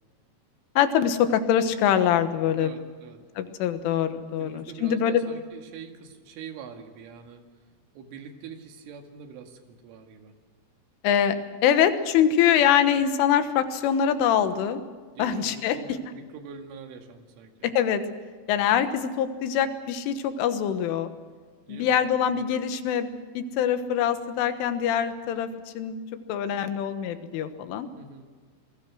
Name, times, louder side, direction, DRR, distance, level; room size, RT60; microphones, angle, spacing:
voice 1, 0.8-2.7 3.4-5.2 11.0-11.4 11.6-14.8 15.2-15.8 17.6-18.0 18.5-21.1 21.7-25.5 25.8-26.0 26.3-27.9, left 9 dB, 85° left, 9 dB, 3.9 m, -24 dB
voice 2, 2.6-3.2 4.4-7.4 7.9-10.3 15.2-17.5 21.7-22.0 28.0-28.3, right 6 dB, 85° right, 4 dB, 4.5 m, -43 dB
28.0 x 20.5 x 6.3 m, 1.5 s
omnidirectional pair, 5.5 m